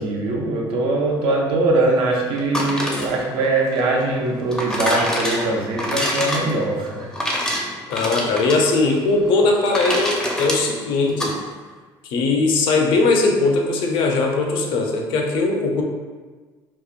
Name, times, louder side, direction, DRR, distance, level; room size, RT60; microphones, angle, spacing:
voice 1, 0.0-7.1, right 2 dB, 70° right, -1 dB, 0.5 m, -22 dB
sound 1, 2.4-11.3, equal, 5° left, 0.4 m, -26 dB
voice 2, 7.9-11.4 12.1-15.8, left 3 dB, 70° left, 1 dB, 0.4 m, -19 dB
2.8 x 2.1 x 2.4 m, 1.4 s
cardioid pair, 115°, 9 cm